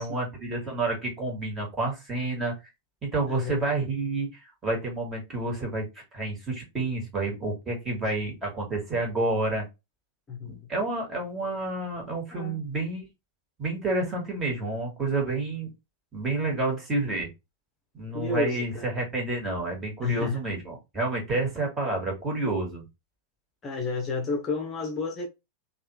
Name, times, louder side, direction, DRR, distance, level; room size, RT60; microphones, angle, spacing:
voice 1, 0.0-2.5 3.0-5.9 6.1-9.6 10.4-13.0 13.6-15.7 16.1-17.3 17.9-22.8, right 2 dB, 20° right, 1.7 m, -29 dB
voice 2, 3.3-3.6 10.3-10.7 12.3-12.6 18.1-18.9 20.0-20.4 23.6-25.3, left 4 dB, 25° left, 0.8 m, -31 dB
3.3 x 2.5 x 3.0 m
figure-of-eight pair, 90°, 0 cm